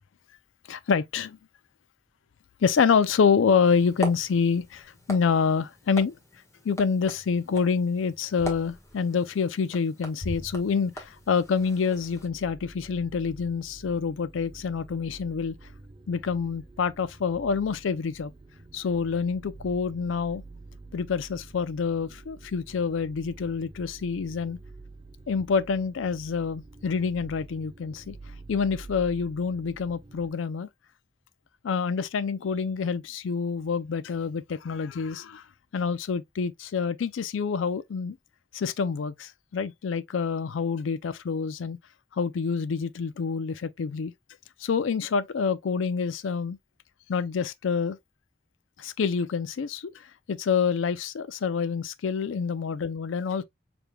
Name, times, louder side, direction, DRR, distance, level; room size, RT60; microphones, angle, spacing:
voice 1, 0.7-1.4 2.6-6.1 6.6-15.6 16.1-18.3 18.7-20.4 20.9-24.6 25.3-28.2 28.5-30.7 31.6-35.4 35.7-38.2 38.5-41.8 42.2-44.1 44.6-46.6 47.1-48.0 48.8-53.4, left 5 dB, 80° left, 0.4 m, -27 dB
sound 1, 3.6-12.3, right 1 dB, 15° left, 1.1 m, -41 dB
sound 2, 11.1-30.3, right 3 dB, 25° right, 0.4 m, -48 dB
4.9 x 3.4 x 2.2 m
head